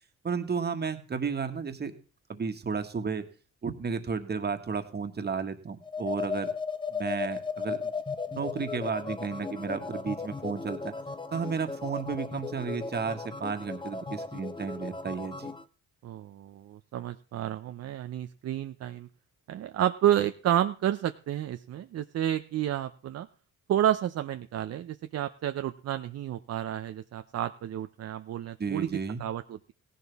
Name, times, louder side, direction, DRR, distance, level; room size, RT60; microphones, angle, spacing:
voice 1, 0.2-1.9 2.3-3.2 3.6-6.5 6.9-7.9 8.3-10.9 11.3-15.5 28.6-29.2, right 5 dB, 35° right, 7 dB, 1.7 m, -33 dB
sound 1, 5.8-15.6, left 4 dB, 15° left, 0.8 m, -36 dB
voice 2, 16.0-19.1 19.5-23.3 23.7-28.9 29.2-29.7, right 11 dB, 55° right, 9 dB, 0.6 m, -30 dB
16.0 x 11.0 x 3.5 m, 0.37 s
cardioid pair, 90°, 30 cm